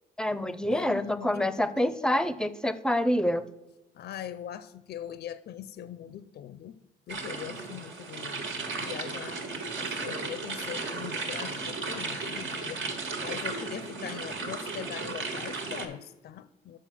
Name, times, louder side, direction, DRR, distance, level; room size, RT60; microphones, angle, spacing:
voice 1, 0.2-3.4, left 1 dB, 5° left, 0.5 m, -27 dB
voice 2, 0.7-2.3 3.9-8.4 8.7-9.4 9.8-12.8 13.2-16.8, left 10 dB, 55° left, 0.5 m, -41 dB
sound 1, 7.1-15.9, right 3 dB, 75° right, 1.6 m, -35 dB
6.4 x 6.2 x 5.9 m
cardioid pair, 90°, 20 cm